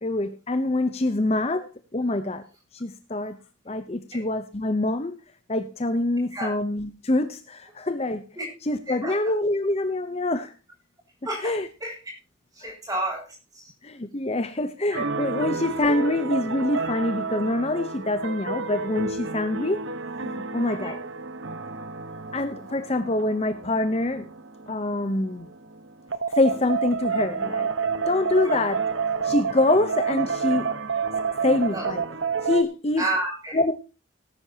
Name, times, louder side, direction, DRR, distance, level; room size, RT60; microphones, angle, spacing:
voice 1, 0.0-2.4 2.7-3.4 3.7-5.2 5.5-8.3 8.6-10.5 11.4-11.7 12.6-12.7 13.8-19.8 20.2-21.0 22.3-24.3 24.7-25.5 26.3-27.7 28.1-28.8 29.2-30.8 31.4-32.0 32.4-33.0 33.5-33.7, left 2 dB, 30° left, 10 dB, 0.8 m, -25 dB
voice 2, 11.2-12.0 12.5-13.7 14.9-15.0 20.7-21.0 28.4-28.6 31.7-31.9 33.0-33.6, right 1 dB, 20° right, 0 dB, 7.0 m, -31 dB
sound 1, 14.9-32.6, right 5 dB, 70° right, 1.2 m, -30 dB
18.0 x 10.5 x 2.8 m, 0.32 s
head